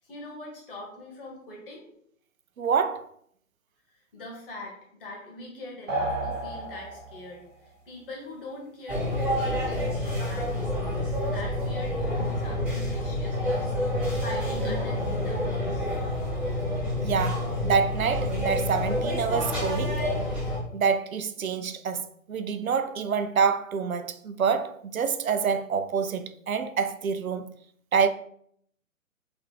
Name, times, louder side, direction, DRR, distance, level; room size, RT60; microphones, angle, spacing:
voice 1, 0.0-1.8 3.9-11.0 11.2-15.9, left 2 dB, 40° left, 1.6 m, -43 dB
voice 2, 2.6-3.1 17.0-20.1 20.7-27.5 27.9-28.1, right 6 dB, 80° right, 0.5 m, -27 dB
sound 1, 5.9-7.4, right 2 dB, 60° right, 1.3 m, -31 dB
sound 2, 8.9-20.6, left 1 dB, 5° right, 1.1 m, -28 dB
3.5 x 3.4 x 3.3 m
figure-of-eight pair, 130°, 41 cm